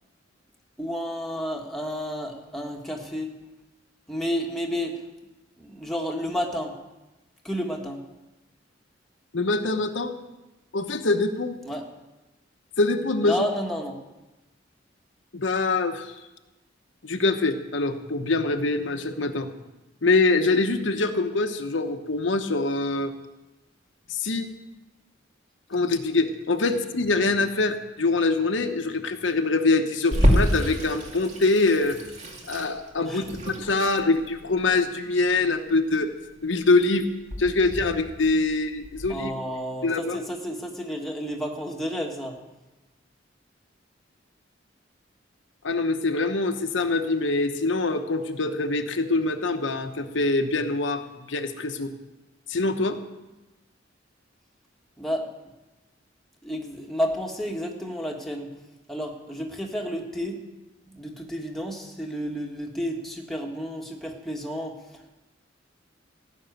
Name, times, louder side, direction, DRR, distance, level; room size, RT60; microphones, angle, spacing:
voice 1, 0.8-3.4 4.1-5.1 5.6-6.8 7.4-8.0 11.6-11.9 13.2-14.0 33.0-33.3 33.8-33.9 39.1-42.4 55.0-55.3 56.4-58.6 58.9-60.4 60.9-65.1, equal, ahead, 0 dB, 1.6 m, -31 dB
voice 2, 9.3-10.1 10.7-11.5 12.8-13.4 15.3-16.1 17.0-19.5 20.0-23.1 24.1-24.5 25.7-32.0 32.5-36.1 36.4-37.1 37.4-39.3 39.8-40.2 45.6-51.0 51.3-51.9 52.5-53.0, left 3 dB, 85° left, 6 dB, 1.0 m, -24 dB
Water tap faucet / Sink (filling or washing), 30.1-39.1, equal, 40° right, 2.2 m, -28 dB
16.0 x 6.4 x 9.3 m, 1.0 s
head